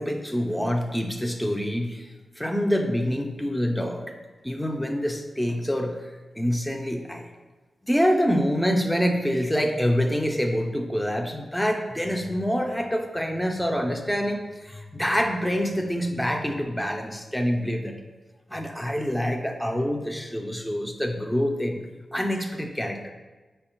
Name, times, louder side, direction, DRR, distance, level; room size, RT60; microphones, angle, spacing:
voice 1, 0.0-2.1 2.4-4.1 4.4-6.0 6.4-7.3 7.8-18.0 18.5-21.8 22.1-23.1, equal, 5° left, 3 dB, 0.4 m, -26 dB
4.6 x 2.2 x 4.3 m, 1.2 s
cardioid pair, 55°, 0 cm